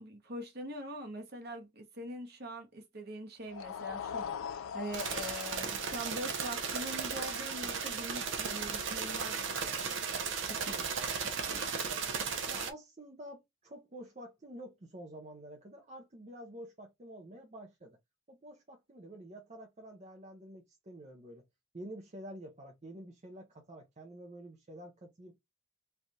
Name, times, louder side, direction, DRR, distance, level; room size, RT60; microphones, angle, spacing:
voice 1, 0.0-9.4 9.7-9.9 10.4-10.9 11.2-11.9, equal, 50° right, 1.2 m, -43 dB
sound 1, 3.4-9.7, left 7 dB, 80° left, 0.4 m, -44 dB
sound 2, 4.9-12.7, right 5 dB, 65° right, 0.8 m, -36 dB
voice 2, 12.5-18.0 18.3-21.4 21.7-25.4, right 1 dB, 35° right, 0.7 m, -49 dB
3.3 x 2.4 x 4.1 m
head